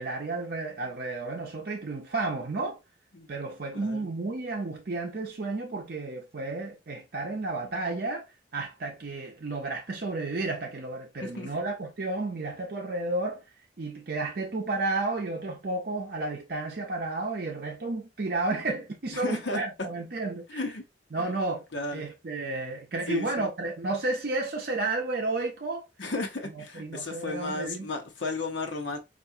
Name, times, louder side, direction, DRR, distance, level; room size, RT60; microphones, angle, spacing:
voice 1, 0.0-2.8 3.3-8.3 8.5-13.4 13.8-20.6 21.1-21.6 21.9-25.8 26.4-27.9, right 2 dB, 55° right, 0.6 m, -32 dB
voice 2, 19.1-19.6 20.5-20.8 21.2-21.3 21.7-22.1 23.1-23.5 26.0-29.0, left 2 dB, 80° left, 1.0 m, -34 dB
4.6 x 2.5 x 2.6 m
head